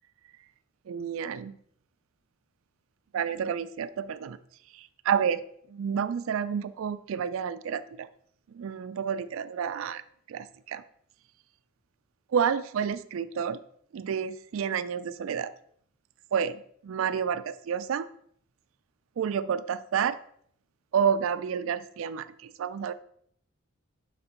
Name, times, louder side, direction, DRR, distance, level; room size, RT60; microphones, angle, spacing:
voice 1, 0.9-1.6 3.1-4.4 4.7-5.4 5.7-8.1 8.5-10.0 10.3-10.8 12.3-13.6 13.9-15.5 16.3-18.1 19.2-20.2 20.9-22.9, right 7 dB, 70° right, 13 dB, 0.3 m, -30 dB
7.7 x 5.8 x 2.9 m, 0.64 s
head